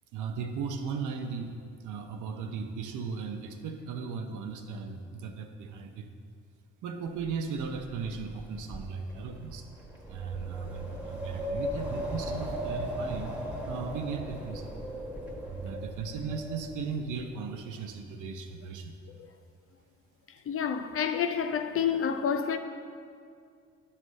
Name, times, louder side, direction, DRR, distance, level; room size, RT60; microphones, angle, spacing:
voice 1, 0.1-1.5 1.8-6.1 6.8-9.6 10.1-13.4 13.6-14.7 15.4-19.0, right 5 dB, 80° right, 0.8 m, -37 dB
Wind, 7.2-17.3, equal, 5° right, 1.4 m, -38 dB
voice 2, 20.5-22.6, left 7 dB, 50° left, 0.6 m, -28 dB
9.5 x 3.3 x 6.3 m
cardioid pair, 90°, 30 cm